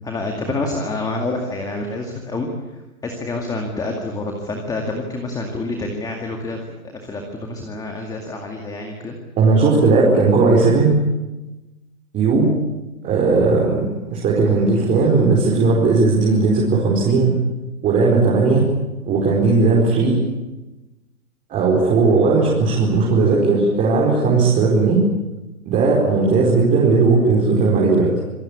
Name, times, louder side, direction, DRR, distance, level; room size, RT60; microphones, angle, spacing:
voice 1, 0.0-6.6 7.0-9.2, left 2 dB, 10° left, 3 dB, 2.2 m, -27 dB
voice 2, 9.4-11.0 12.1-12.5 13.0-17.4 17.8-18.7 19.1-20.2 21.5-25.0 25.7-28.1, right 3 dB, 20° right, -3 dB, 4.8 m, -16 dB
27.0 x 18.5 x 8.5 m, 1.1 s
hypercardioid pair, 150°, 43 cm